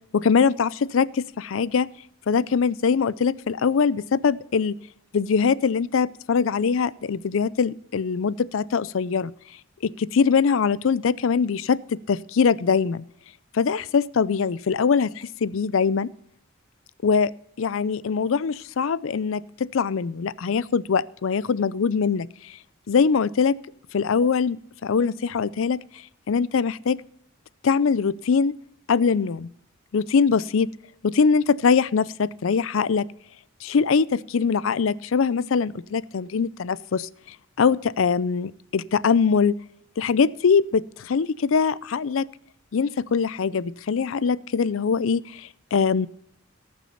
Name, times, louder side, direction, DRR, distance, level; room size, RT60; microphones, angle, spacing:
voice 1, 0.1-1.9 2.3-4.7 5.1-9.3 9.8-13.0 13.5-16.1 17.0-17.3 17.6-22.6 22.9-23.5 23.9-25.8 26.3-27.0 27.6-28.5 28.9-29.5 29.9-30.7 31.0-33.0 33.6-37.1 37.6-39.5 40.0-42.3 42.7-46.1, left 5 dB, 70° left, 19 dB, 0.5 m, -22 dB
18.5 x 6.1 x 5.5 m, 0.75 s
head